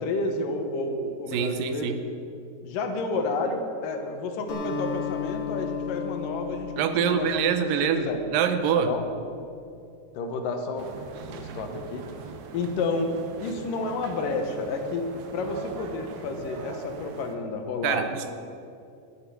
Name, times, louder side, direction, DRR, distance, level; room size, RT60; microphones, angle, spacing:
voice 1, 0.0-1.9 2.6-6.7 7.0-7.7 7.9-8.2 8.7-9.0 10.2-10.9 11.3-12.1 12.5-13.1 13.4-18.1, left 3 dB, 85° left, 5 dB, 2.8 m, -30 dB
voice 2, 1.3-2.0 6.8-9.0 17.8-18.3, right 7 dB, 90° right, 9 dB, 2.5 m, -25 dB
Acoustic guitar, 4.5-9.0, left 7 dB, 70° left, 4.4 m, -35 dB
sound 1, 10.8-17.4, right 6 dB, 70° right, 2.2 m, -41 dB
11.5 x 9.7 x 8.6 m, 2.5 s
omnidirectional pair, 3.8 m